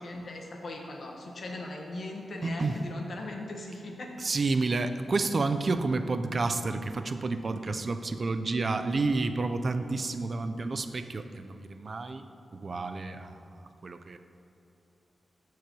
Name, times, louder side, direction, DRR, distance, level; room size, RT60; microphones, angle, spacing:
voice 1, 0.0-4.1, left 2 dB, 55° left, 1 dB, 1.3 m, -39 dB
voice 2, 2.4-2.7 4.2-12.3 12.5-13.4 13.8-14.2, right 3 dB, 40° right, 9 dB, 0.5 m, -30 dB
13.5 x 4.8 x 4.6 m, 2.9 s
wide cardioid pair, 115°, 0 cm